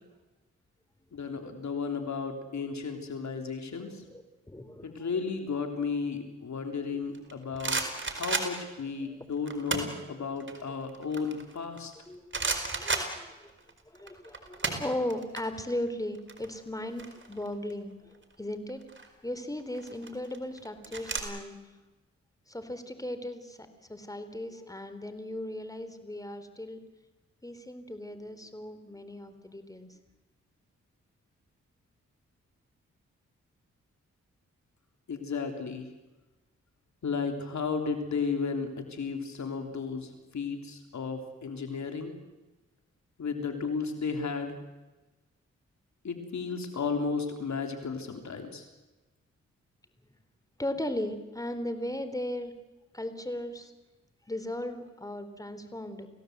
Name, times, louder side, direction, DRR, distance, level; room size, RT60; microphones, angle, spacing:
voice 1, 1.1-4.0 4.8-11.9 35.1-35.8 37.0-42.1 43.2-44.6 46.0-48.6, left 5 dB, 65° left, 5 dB, 3.4 m, -34 dB
voice 2, 4.0-5.1 9.0-9.2 12.1-13.5 13.9-18.8 19.2-21.6 22.5-26.8 27.4-30.0 50.6-52.5 52.9-53.7 54.3-56.1, left 1 dB, 10° left, 10 dB, 3.5 m, -37 dB
sound 1, 7.1-8.8 9.5-10.0 10.4-11.9 12.3-13.7 14.0-15.4 15.7-15.9 16.1-17.7 18.7-19.1 19.7-21.2, right 3 dB, 40° right, 4.6 m, -33 dB
28.0 x 17.0 x 8.0 m, 1.1 s
cardioid pair, 50°, 30 cm